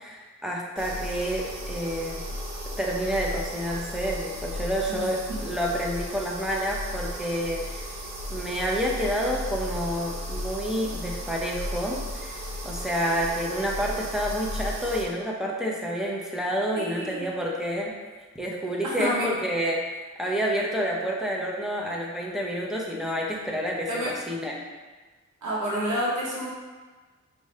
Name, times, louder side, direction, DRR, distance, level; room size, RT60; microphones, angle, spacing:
voice 1, 0.0-2.3 2.8-8.0 8.3-18.0 18.3-19.8 20.2-24.6, equal, ahead, -3 dB, 0.7 m, -29 dB
sound 1, 0.8-15.0, equal, 60° right, 0.8 m, -35 dB
voice 2, 16.7-17.3 19.0-19.3 23.9-24.1 25.4-26.5, equal, 80° right, -6 dB, 1.0 m, -29 dB
4.6 x 2.6 x 3.2 m, 1.3 s
wide cardioid pair, 80°, 30 cm